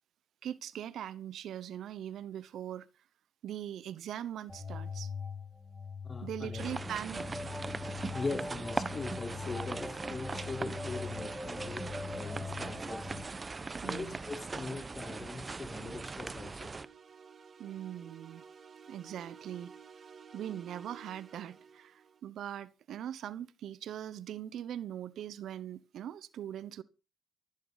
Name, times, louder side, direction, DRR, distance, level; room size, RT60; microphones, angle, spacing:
voice 1, 0.4-2.9 3.4-5.1 6.2-7.3 13.8-14.2 17.6-18.4 18.9-19.7 20.3-26.8, right 10 dB, 70° right, 1.0 m, -41 dB
sound 1, 4.5-13.2, left 4 dB, 15° left, 5.9 m, -42 dB
voice 2, 6.0-6.9 8.1-13.1 13.8-16.7, left 3 dB, 30° left, 4.0 m, -41 dB
sound 2, 6.6-16.9, right 3 dB, 30° right, 1.1 m, -40 dB
sound 3, 15.2-22.2, right 6 dB, 50° right, 2.3 m, -54 dB
15.0 x 15.0 x 4.1 m
cardioid pair, 90°, 0 cm